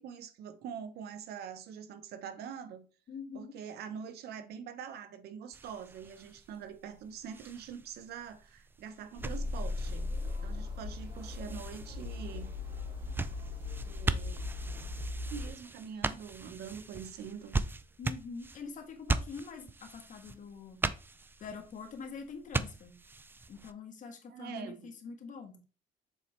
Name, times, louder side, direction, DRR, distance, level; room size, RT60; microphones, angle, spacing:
voice 1, 0.0-2.9 3.3-10.1 10.4-12.5 13.9-14.6 15.3-17.6 24.3-24.9, right 7 dB, 70° right, 0.9 m, -44 dB
voice 2, 3.1-3.5 18.0-20.8 21.4-23.0 23.5-25.6, left 5 dB, 50° left, 1.5 m, -45 dB
sound 1, 5.5-23.7, right 3 dB, 10° right, 0.4 m, -40 dB
sound 2, 9.2-15.5, left 3 dB, 30° right, 2.5 m, -38 dB
7.0 x 4.1 x 3.2 m
cardioid pair, 110°, 17 cm